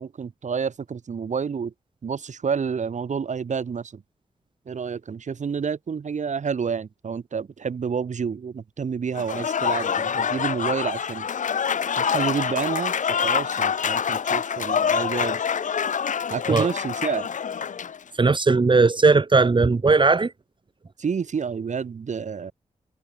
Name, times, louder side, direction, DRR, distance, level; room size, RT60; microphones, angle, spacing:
voice 1, 0.0-1.7 2.0-4.0 4.7-11.3 12.0-15.4 16.3-17.3 21.0-22.5, right 6 dB, 65° right, 3.3 m, -29 dB
Applause / Crowd, 9.1-18.0, left 7 dB, 70° left, 1.5 m, -26 dB
voice 2, 18.2-20.3, right 3 dB, 40° right, 1.6 m, -18 dB
cardioid pair, 60°, 13 cm